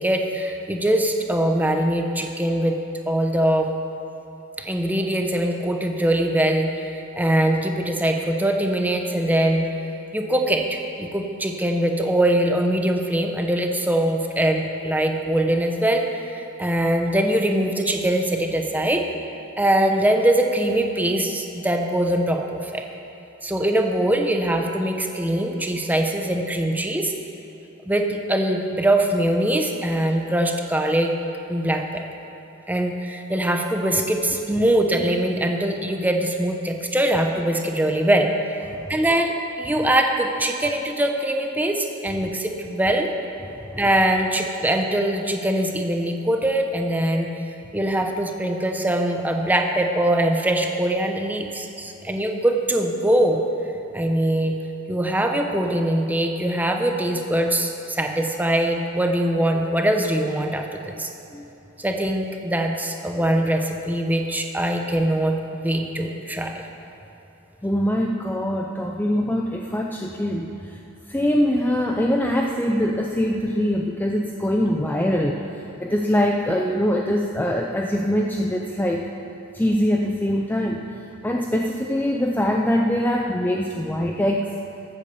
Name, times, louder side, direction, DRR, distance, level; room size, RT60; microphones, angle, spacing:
voice 1, 0.0-2.8 3.1-3.7 4.6-9.7 10.1-19.0 19.6-22.8 23.4-27.1 27.9-31.1 31.5-32.0 32.7-38.3 38.9-43.1 43.8-47.3 47.7-53.4 53.9-54.6 54.9-61.1 61.8-66.6, right 1 dB, 10° right, 3 dB, 0.9 m, -22 dB
voice 2, 38.7-39.0 43.4-43.8 61.3-61.5 67.6-70.8 71.1-75.4 75.8-79.1 79.5-80.8 81.2-84.5, equal, 10° left, 1 dB, 0.5 m, -23 dB
13.5 x 8.3 x 7.0 m, 3.0 s
head